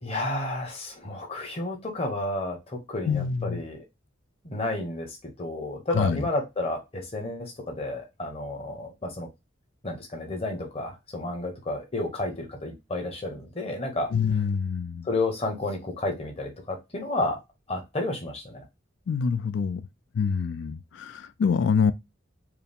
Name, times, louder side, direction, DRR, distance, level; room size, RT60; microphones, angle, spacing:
voice 1, 0.0-3.8 4.4-9.3 9.8-14.1 15.0-17.4 17.7-18.6, left 2 dB, 30° left, 1.0 m, -31 dB
voice 2, 3.1-3.6 5.9-6.3 14.1-15.1 19.1-19.8 20.1-21.9, left 6 dB, 65° left, 0.3 m, -25 dB
4.6 x 2.0 x 3.4 m
head